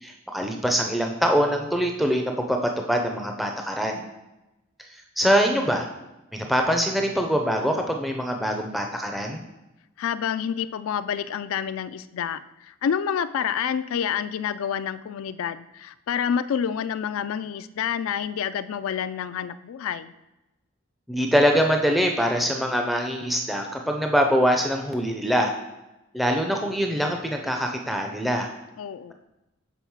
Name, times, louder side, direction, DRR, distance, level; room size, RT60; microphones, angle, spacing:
voice 1, 0.0-4.0 4.9-5.9 6.3-9.4 21.1-25.5 26.1-28.5, equal, ahead, 2 dB, 0.4 m, -24 dB
voice 2, 10.0-20.1 28.8-29.1, left 8 dB, 75° left, 14 dB, 0.3 m, -28 dB
7.0 x 4.0 x 4.6 m, 0.97 s
head